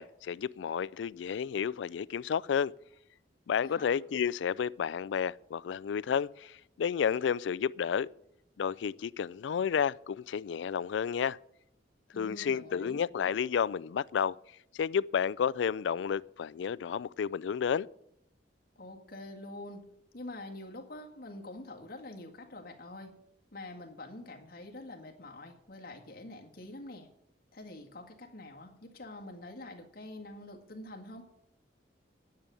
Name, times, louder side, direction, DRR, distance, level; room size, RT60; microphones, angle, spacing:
voice 1, 0.0-2.7 3.5-8.1 8.6-11.4 12.2-14.3 14.7-17.9, left 7 dB, 80° left, 0.3 m, -31 dB
voice 2, 3.6-4.0 12.1-13.0 18.8-19.8 20.1-23.1 23.5-27.1 27.5-31.3, left 2 dB, 55° left, 1.8 m, -46 dB
10.5 x 6.9 x 9.0 m
head